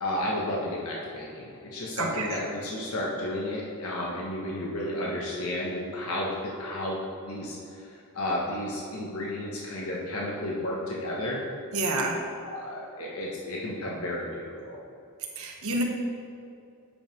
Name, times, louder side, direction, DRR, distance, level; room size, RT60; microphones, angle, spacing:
voice 1, 0.0-7.0 7.2-11.4 12.5-14.8, left 1 dB, 70° left, -4 dB, 1.2 m, -32 dB
voice 2, 2.0-2.4 11.7-12.2 15.4-15.8, right 2 dB, 70° right, 1 dB, 1.2 m, -28 dB
8.5 x 5.5 x 5.3 m, 2.5 s
head